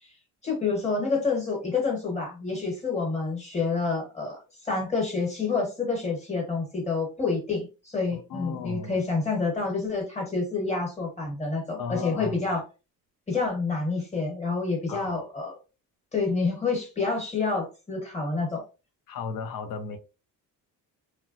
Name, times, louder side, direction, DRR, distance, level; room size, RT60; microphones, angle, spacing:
voice 1, 0.4-4.4 4.6-12.6 13.3-15.6 16.1-18.6, left 4 dB, 20° left, 1.2 m, -28 dB
voice 2, 8.1-8.9 11.8-12.4 14.9-15.2 19.1-20.0, left 5 dB, 70° left, 0.6 m, -35 dB
3.0 x 2.1 x 2.5 m
cardioid pair, 150°, 36 cm